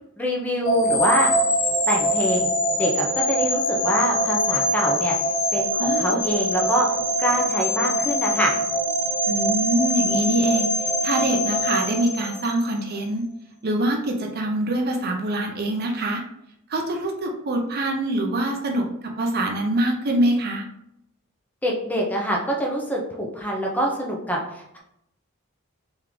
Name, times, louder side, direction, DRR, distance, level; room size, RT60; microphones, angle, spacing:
voice 1, 0.2-1.3 1.9-2.5 2.8-5.1 5.5-6.9 7.2-8.5 21.6-24.8, equal, 5° left, -1 dB, 0.7 m, -25 dB
sound 1, 0.6-12.8, equal, 40° left, 0.8 m, -23 dB
voice 2, 5.8-6.2 9.3-13.3 13.6-16.2 16.7-20.7, right 1 dB, 45° right, 2 dB, 0.6 m, -24 dB
3.8 x 3.5 x 3.1 m, 0.79 s
head